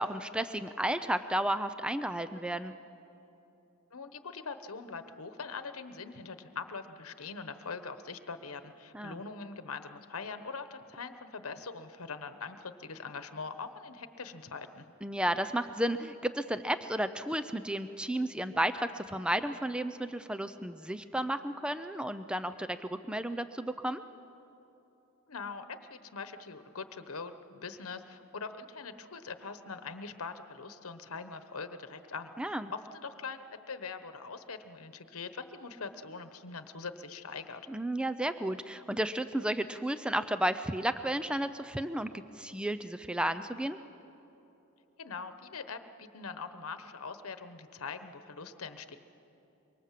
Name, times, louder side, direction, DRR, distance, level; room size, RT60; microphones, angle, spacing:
voice 1, 0.0-2.7 8.9-9.2 15.0-24.0 32.4-32.7 37.7-42.1 42.4-43.8, right 1 dB, 5° right, 11 dB, 0.4 m, -33 dB
voice 2, 3.9-14.8 25.3-37.6 45.0-48.9, left 4 dB, 85° left, 9 dB, 1.1 m, -42 dB
24.5 x 23.5 x 7.5 m, 3.0 s
head